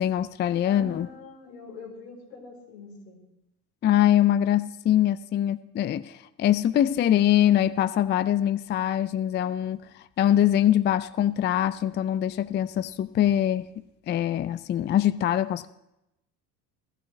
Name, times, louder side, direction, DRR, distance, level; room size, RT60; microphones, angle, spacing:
voice 1, 0.0-1.1 3.8-9.8 10.2-13.7 14.1-15.7, left 11 dB, 25° left, 0.4 m, -23 dB
voice 2, 0.6-3.3, left 3 dB, 85° left, 4.0 m, -43 dB
17.5 x 13.0 x 3.2 m
hypercardioid pair, 70°, 46 cm